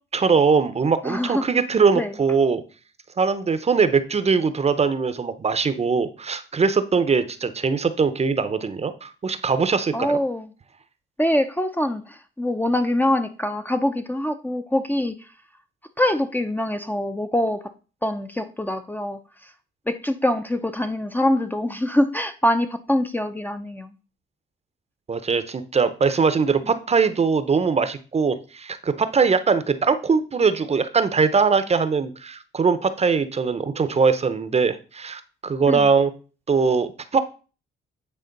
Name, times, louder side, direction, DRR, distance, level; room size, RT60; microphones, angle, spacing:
voice 1, 0.1-2.6 3.2-10.2 25.1-36.1 36.5-37.2, right 5 dB, 30° right, 12 dB, 0.8 m, -21 dB
voice 2, 1.0-1.5 1.9-2.1 9.9-10.5 11.2-15.3 16.0-17.7 18.0-19.5 19.9-23.9 26.6-26.7 35.7-35.9, left 1 dB, 10° left, 8 dB, 0.6 m, -24 dB
9.2 x 3.5 x 5.3 m, 0.35 s
cardioid pair, 90°, 20 cm